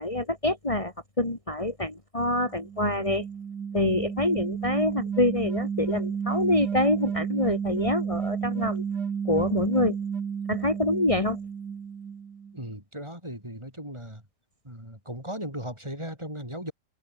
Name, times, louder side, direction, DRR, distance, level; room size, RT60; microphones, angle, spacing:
voice 1, 0.0-3.2 3.7-8.8 9.3-10.0 10.5-11.4, left 1 dB, 20° left, 3.7 m, -26 dB
sound 1, 2.4-12.6, right 7 dB, 80° right, 2.3 m, -32 dB
voice 2, 12.5-14.2 14.6-16.7, equal, 15° right, 7.6 m, -37 dB
omnidirectional pair, 1.8 m